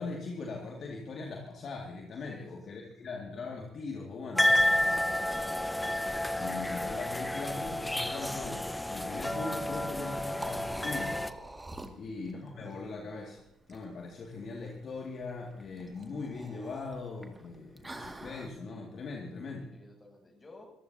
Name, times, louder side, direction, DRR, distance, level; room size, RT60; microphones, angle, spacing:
voice 1, 0.0-4.5 6.4-11.2 12.0-13.4 13.7-19.7, left 3 dB, 50° left, 1 dB, 2.3 m, -40 dB
voice 2, 2.3-3.1 4.8-5.1 11.7-12.0 19.7-20.7, left 2 dB, 25° left, 2 dB, 7.7 m, -55 dB
sound 1, 4.4-11.3, left 1 dB, 10° left, 1.0 m, -30 dB
Liquid, 9.8-18.5, right 2 dB, 15° right, 2.1 m, -48 dB
24.0 x 15.0 x 2.8 m, 0.85 s
hypercardioid pair, 55°, 0 cm